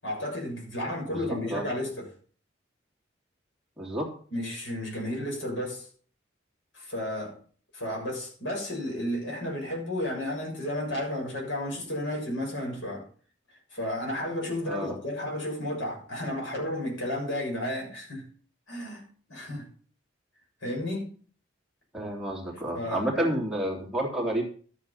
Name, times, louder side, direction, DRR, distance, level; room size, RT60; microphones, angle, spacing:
voice 1, 0.0-2.1 4.3-5.9 6.7-7.3 7.7-13.0 13.7-18.2 18.7-19.0 19.3-19.7 20.6-21.1 22.7-23.3, left 1 dB, 85° left, -1 dB, 7.1 m, -32 dB
voice 2, 1.1-1.6 3.8-4.1 14.7-15.0 21.9-24.4, right 1 dB, 5° right, -2 dB, 3.0 m, -30 dB
12.5 x 8.6 x 5.6 m, 0.43 s
head